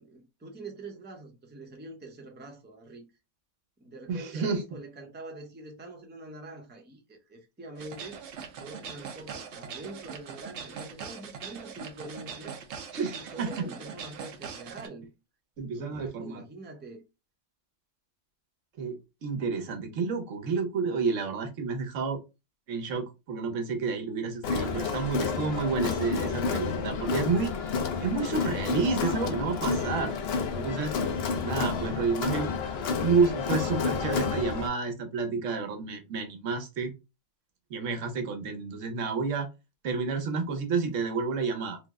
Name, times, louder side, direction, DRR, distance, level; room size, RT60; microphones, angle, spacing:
voice 1, 0.0-3.1 3.8-8.2 8.6-12.6 13.1-15.1 15.6-17.0, right 2 dB, 10° right, 0.5 m, -45 dB
voice 2, 4.1-4.6 12.9-13.7 15.6-16.4 18.8-18.9 19.2-22.2 22.7-27.5 28.0-30.1 30.5-30.9 31.4-32.5 33.0-36.9 37.7-39.5 39.8-41.8, right 4 dB, 85° right, 1.2 m, -30 dB
sound 1, 7.8-14.9, right 6 dB, 70° right, 0.9 m, -41 dB
Crowd, 24.4-34.7, left 5 dB, 60° left, 0.8 m, -30 dB
3.3 x 2.0 x 3.4 m
omnidirectional pair, 1.3 m